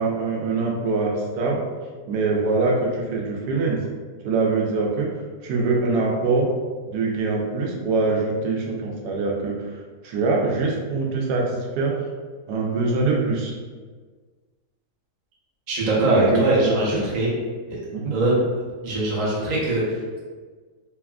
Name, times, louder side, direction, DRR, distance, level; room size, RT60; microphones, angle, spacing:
voice 1, 0.0-1.6 2.1-3.8 4.2-5.1 5.4-6.5 6.9-9.6 10.0-11.9 12.5-13.5 16.0-17.0 17.9-18.1, right 3 dB, 90° right, -1 dB, 1.2 m, -23 dB
voice 2, 15.7-17.3 17.7-17.8 18.1-20.2, right 1 dB, 40° right, -6 dB, 0.6 m, -22 dB
3.3 x 2.3 x 2.3 m, 1.4 s
omnidirectional pair, 1.7 m